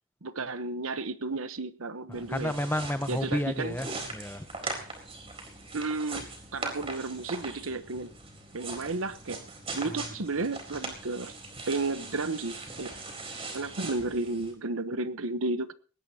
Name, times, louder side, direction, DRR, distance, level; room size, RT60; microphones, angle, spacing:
voice 1, 0.2-2.6 3.1-3.8 5.7-8.1 8.5-9.5 9.7-11.3 11.7-12.9 13.5-15.7, right 3 dB, 85° right, 12 dB, 1.1 m, -33 dB
voice 2, 2.1-4.5, left 1 dB, 10° left, 10 dB, 0.8 m, -31 dB
sound 1, 2.1-14.5, right 3 dB, 30° right, 4.0 m, -41 dB
20.5 x 17.5 x 2.9 m, 0.38 s
head